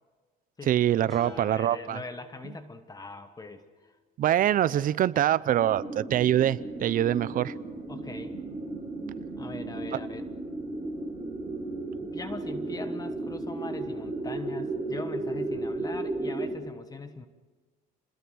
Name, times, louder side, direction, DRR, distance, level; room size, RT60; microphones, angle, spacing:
voice 1, 0.7-2.0 4.2-7.5 9.9-10.0, right 11 dB, 55° right, 17 dB, 0.7 m, -24 dB
sound 1, 1.1-4.3, left 2 dB, ahead, 6.0 m, -51 dB
voice 2, 1.2-4.0 7.1-7.4 7.9-8.3 9.4-10.3 12.0-17.3, left 3 dB, 20° left, 9 dB, 1.3 m, -42 dB
sound 2, 5.6-16.5, right 2 dB, 25° right, 6.0 m, -34 dB
27.5 x 21.0 x 6.3 m, 1.4 s
cardioid pair, 110°, 17 cm